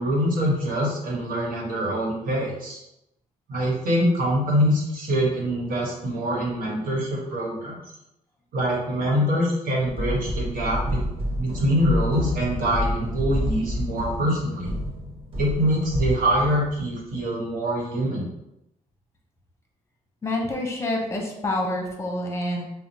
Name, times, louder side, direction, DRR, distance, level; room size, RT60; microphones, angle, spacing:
voice 1, 0.0-2.8 3.5-7.8 8.5-11.0 11.4-14.7 15.4-18.2, equal, 65° right, -3 dB, 1.3 m, -24 dB
sound 1, 9.9-17.1, equal, 35° right, 0.9 m, -29 dB
voice 2, 20.2-22.7, left 1 dB, 20° left, 1 dB, 0.9 m, -27 dB
2.9 x 2.1 x 3.9 m, 0.85 s
cardioid pair, 75°, 15 cm